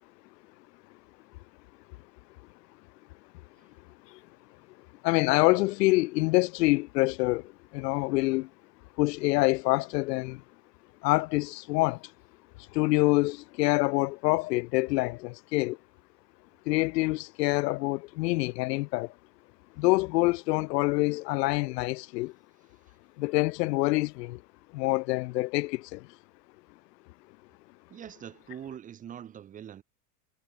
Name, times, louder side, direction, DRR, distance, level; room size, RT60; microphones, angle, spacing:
voice 1, 5.0-8.5 9.0-10.4 11.0-12.1 12.7-15.8 16.7-19.1 19.8-22.3 23.2-24.4 24.7-26.1, left 22 dB, 90° left, 0.6 m, -26 dB
voice 2, 27.9-29.8, right 9 dB, 15° right, 1.7 m, -43 dB
supercardioid pair, 175°, 48 cm